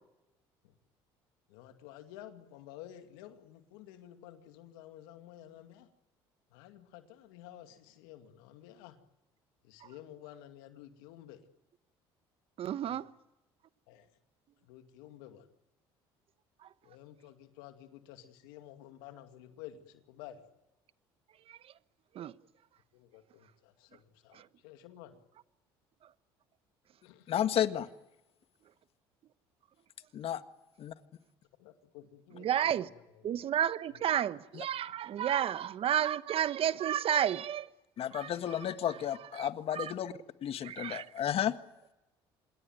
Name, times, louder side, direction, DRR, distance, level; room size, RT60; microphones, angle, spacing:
voice 1, 1.5-5.9 6.5-9.0 9.6-11.4 12.8-13.0 13.9-14.1 14.6-15.5 16.8-20.4 22.9-25.2 27.0-27.3 31.6-33.3 38.8-39.0, left 12 dB, 85° left, 2.4 m, -52 dB
voice 2, 12.6-13.1 16.6-16.7 21.5-21.7 22.1-22.3 24.3-24.5 32.3-32.9 33.2-37.7 38.1-38.6 39.3-39.9 40.6-41.1, right 10 dB, 55° right, 1.1 m, -32 dB
voice 3, 27.3-27.9 30.1-30.4 30.8-30.9 38.0-40.1 40.4-41.5, left 10 dB, 55° left, 1.6 m, -32 dB
27.0 x 21.5 x 9.2 m
supercardioid pair, 75°, 12 cm